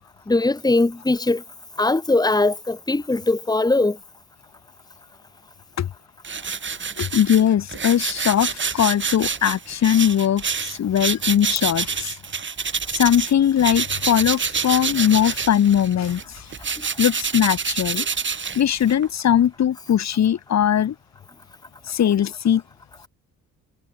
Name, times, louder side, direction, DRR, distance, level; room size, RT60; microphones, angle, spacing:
voice 1, 0.3-1.4 1.8-4.0, left 2 dB, 15° left, 2.5 m, -20 dB
sound 1, 6.2-13.3 13.6-19.1, right 6 dB, 40° right, 5.7 m, -27 dB
voice 2, 7.0-12.1 12.9-16.5 17.0-18.1 18.6-21.0 21.9-22.6, left 10 dB, 60° left, 3.6 m, -20 dB
cardioid pair, 90°, 30 cm